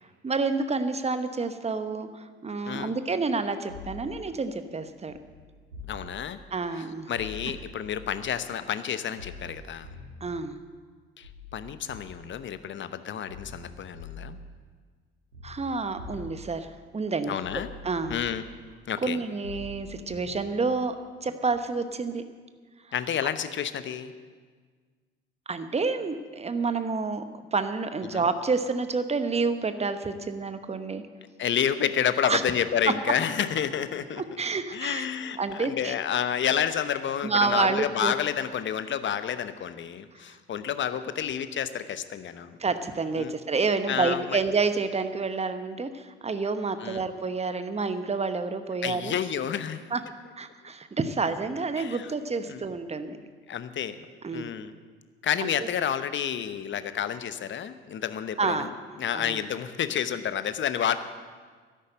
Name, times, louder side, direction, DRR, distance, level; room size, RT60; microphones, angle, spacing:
voice 1, 0.2-5.1 6.5-7.1 10.2-10.6 15.4-17.4 17.8-18.2 19.0-22.2 25.5-27.2 27.5-31.0 32.2-32.4 34.2-35.0 35.4-35.9 37.2-38.1 42.6-49.1 49.9-50.0 50.4-53.2 54.2-54.5 55.4-55.5 58.4-58.7 59.1-59.4, right 4 dB, 20° right, 10 dB, 1.1 m, -29 dB
sound 1, 3.7-4.2 5.1-6.2 7.1-8.3 9.2-10.3 11.2-12.4 13.3-14.4 15.3-16.5 17.4-18.5 19.4-20.5 21.5-21.6, left 3 dB, 90° right, 2.2 m, -44 dB
voice 2, 5.9-6.4 6.7-9.9 11.2-14.4 17.3-17.7 18.1-18.4 18.9-19.2 22.9-24.1 28.1-28.2 31.4-34.2 34.7-42.6 43.2-43.3 43.9-44.4 46.8-47.0 48.8-49.8 51.8-52.1 52.5-52.6 53.5-54.0 54.3-54.7 55.2-58.7 59.0-61.0, left 9 dB, 40° left, 12 dB, 1.0 m, -30 dB
12.5 x 11.0 x 7.9 m, 1.5 s
figure-of-eight pair, 50°, 29 cm